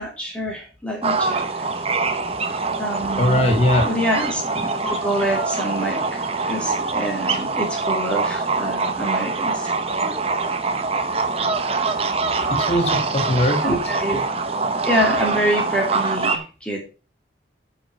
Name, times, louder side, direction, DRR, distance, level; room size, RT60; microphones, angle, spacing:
voice 1, 0.0-1.7 2.8-3.5 3.8-9.7 13.6-14.2 14.8-16.9, equal, 5° left, -1 dB, 2.9 m, -26 dB
sound 1, 1.0-16.4, right 4 dB, 30° right, 0.9 m, -24 dB
voice 2, 3.2-3.9 12.5-13.8, left 1 dB, 30° left, 3 dB, 2.1 m, -20 dB
8.6 x 6.4 x 5.0 m, 0.34 s
head